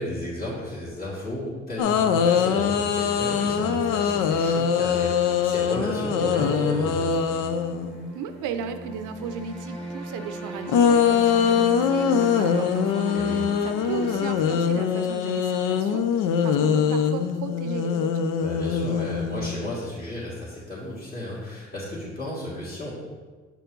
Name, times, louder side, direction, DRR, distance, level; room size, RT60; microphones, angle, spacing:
voice 1, 0.0-7.3 13.1-13.5 18.4-22.9, left 1 dB, 30° left, -11 dB, 2.1 m, -33 dB
sound 1, 1.8-8.1 10.7-19.8, left 7 dB, 90° left, 0.5 m, -23 dB
sound 2, 2.4-15.3, equal, ahead, 1.4 m, -37 dB
voice 2, 8.1-13.2 13.6-18.2, right 6 dB, 90° right, 9 dB, 0.6 m, -35 dB
8.0 x 4.5 x 3.8 m, 1.4 s
cardioid pair, 90°, 30 cm